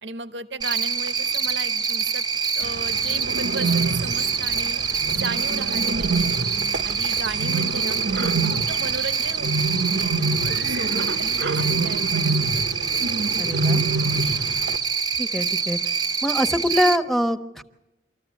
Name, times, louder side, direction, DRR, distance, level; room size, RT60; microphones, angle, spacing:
voice 1, 0.0-2.2 2.6-4.8 5.1-8.0 8.5-12.6, right 3 dB, 90° right, 11 dB, 1.1 m, -35 dB
Cricket, 0.6-17.0, right 5 dB, 25° right, 0.7 m, -25 dB
Bird, 2.6-14.8, right 3 dB, 70° right, 0.8 m, -27 dB
voice 2, 13.4-13.9 15.2-15.9 16.2-17.6, equal, ahead, 8 dB, 1.0 m, -24 dB
25.5 x 14.5 x 8.3 m, 0.99 s
head